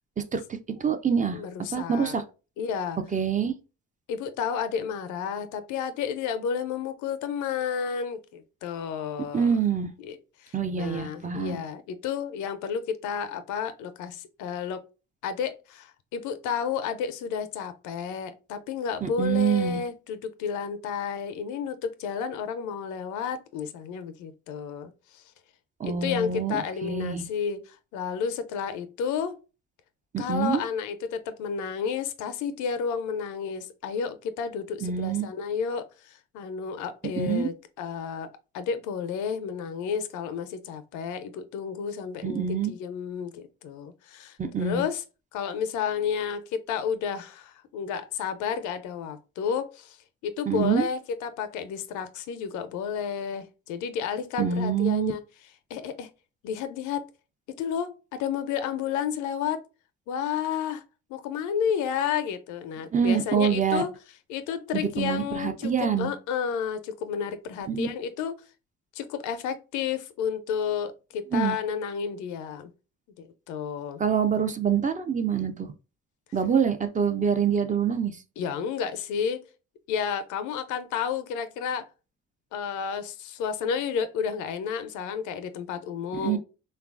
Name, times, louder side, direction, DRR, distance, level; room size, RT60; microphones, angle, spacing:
voice 1, 0.2-1.4 1.7-2.2 3.1-3.5 9.3-9.9 10.5-11.6 19.0-19.8 25.8-27.2 30.1-30.6 34.8-35.3 37.2-37.5 42.2-42.7 44.4-44.8 50.5-50.9 54.4-55.1 62.9-63.8 64.7-66.1 67.7-67.9 71.3-71.6 74.0-75.7 76.3-78.2 86.1-86.4, right 7 dB, 25° right, 0.4 m, -26 dB
voice 2, 1.3-2.1 2.6-3.0 4.1-9.5 10.0-14.8 15.2-25.2 25.8-29.4 30.2-45.0 45.3-50.0 50.2-55.2 55.7-56.1 56.4-57.1 57.5-59.6 60.1-60.8 61.1-63.9 64.3-68.3 68.9-72.7 73.2-74.0 78.4-79.4 79.9-81.9 82.5-86.4, left 7 dB, 85° left, 0.5 m, -31 dB
3.0 x 2.3 x 2.3 m
supercardioid pair, 70°, 29 cm